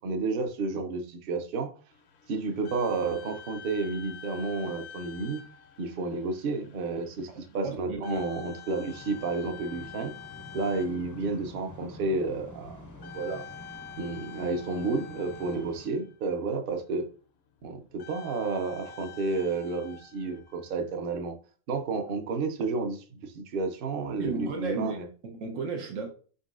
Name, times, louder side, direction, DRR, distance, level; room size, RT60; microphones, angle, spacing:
voice 1, 0.0-1.7 2.3-5.4 5.8-10.1 10.5-12.8 13.1-13.4 14.0-17.1 17.6-21.4 21.7-25.1, right 3 dB, 55° right, 0.7 m, -31 dB
sound 1, 1.9-16.4 17.9-21.2, left 7 dB, 65° left, 0.8 m, -48 dB
voice 2, 7.6-8.2 24.2-25.0 25.2-26.1, right 4 dB, 80° right, 1.1 m, -33 dB
sound 2, 8.9-15.9, left 2 dB, 25° left, 0.4 m, -48 dB
4.4 x 3.9 x 2.4 m
omnidirectional pair, 1.3 m